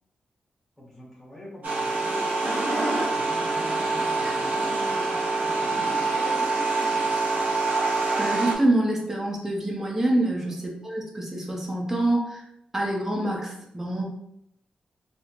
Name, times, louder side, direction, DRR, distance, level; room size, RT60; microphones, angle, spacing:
voice 1, 0.8-2.3 3.1-6.9 10.4-10.5, left 1 dB, 5° left, -5 dB, 1.0 m, -43 dB
sound 1, 1.6-8.5, right 3 dB, 85° right, 0.9 m, -25 dB
voice 2, 8.2-12.4 12.7-14.0, right 1 dB, 15° right, -2 dB, 0.7 m, -26 dB
4.0 x 2.0 x 2.9 m, 0.77 s
wide cardioid pair, 150°, 3 cm